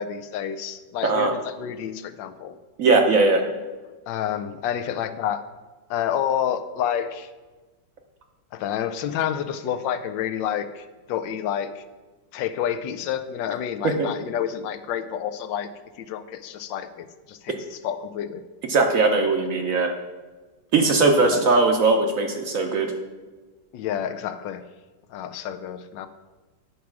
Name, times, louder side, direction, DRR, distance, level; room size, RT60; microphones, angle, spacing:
voice 1, 0.0-2.6 4.1-5.4 5.9-7.3 8.5-11.8 12.3-15.7 16.0-18.4 21.2-21.4 23.7-24.6 25.1-26.1, left 9 dB, 85° left, 11 dB, 1.3 m, -29 dB
voice 2, 1.0-1.3 2.8-3.4 13.8-14.1 18.7-19.9 20.7-22.9, right 3 dB, 60° right, 4 dB, 0.9 m, -19 dB
9.6 x 4.7 x 6.0 m, 1.3 s
omnidirectional pair, 1.9 m